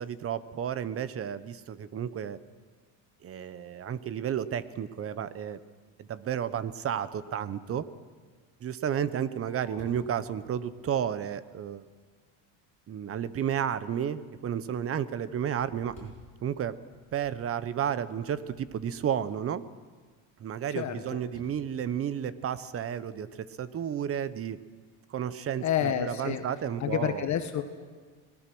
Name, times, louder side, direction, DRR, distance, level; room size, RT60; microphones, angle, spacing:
voice 1, 0.0-2.4 3.2-5.6 6.0-7.9 8.6-11.9 12.9-16.1 16.4-16.8 17.1-19.6 20.4-24.6 25.1-27.3, right 9 dB, 35° right, 15 dB, 1.0 m, -32 dB
Fireworks, 9.2-12.4 13.0-13.1 13.6-14.0 14.4-19.3 21.3-22.7, left 2 dB, 15° left, 7.9 m, -56 dB
voice 2, 20.7-21.2 25.6-26.4 26.8-27.6, left 9 dB, 40° left, 7 dB, 1.5 m, -29 dB
27.0 x 19.5 x 6.2 m, 1.5 s
cardioid pair, 125°, 42 cm